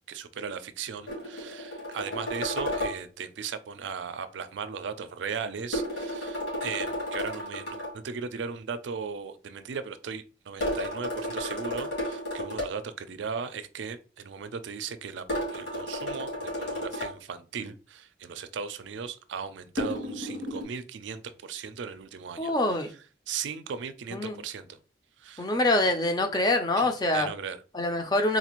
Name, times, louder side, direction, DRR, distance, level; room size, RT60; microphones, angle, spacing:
voice 1, 0.1-22.5 23.3-24.8 25.2-25.5 26.8-27.6, right 6 dB, 80° right, 0.4 m, -37 dB
sound 1, 1.1-3.0 5.7-7.9 10.6-12.7 15.3-17.1 19.8-20.6, left 1 dB, 65° left, 1.6 m, -32 dB
voice 2, 22.4-22.9 24.1-24.4 25.4-27.3 27.7-28.4, left 2 dB, 20° left, 0.4 m, -25 dB
3.9 x 2.4 x 2.9 m
head